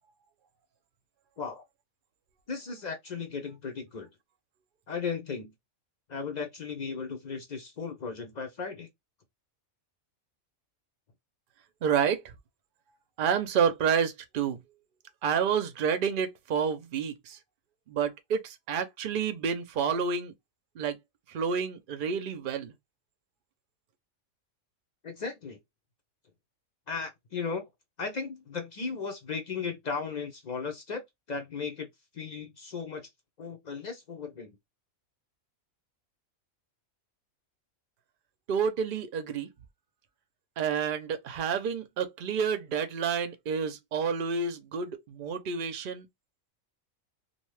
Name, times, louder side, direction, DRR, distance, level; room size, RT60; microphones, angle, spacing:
voice 1, 2.5-4.1 4.9-5.5 6.1-8.9 25.0-25.6 26.9-27.7 28.0-31.0 31.3-31.9 32.1-33.0 33.4-34.5, left 5 dB, 60° left, 0.4 m, -36 dB
voice 2, 11.8-12.2 13.2-14.6 15.2-17.4 17.9-20.3 20.8-21.0 21.3-22.7 38.5-39.5 40.6-46.1, right 6 dB, 55° right, 0.6 m, -29 dB
2.6 x 2.2 x 3.1 m
omnidirectional pair, 1.5 m